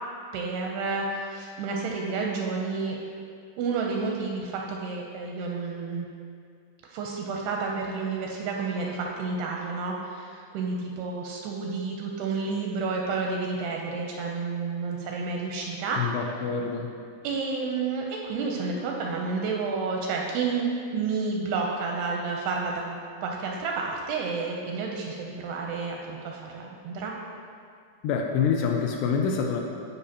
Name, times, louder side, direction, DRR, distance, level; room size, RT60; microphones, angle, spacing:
voice 1, 0.3-3.0 3.6-6.1 6.8-16.0 17.2-27.1, right 4 dB, 85° right, 0 dB, 2.4 m, -30 dB
voice 2, 16.0-16.9 28.0-29.6, left 6 dB, 80° left, 1 dB, 2.5 m, -26 dB
14.0 x 5.4 x 2.8 m, 2.3 s
omnidirectional pair, 5.0 m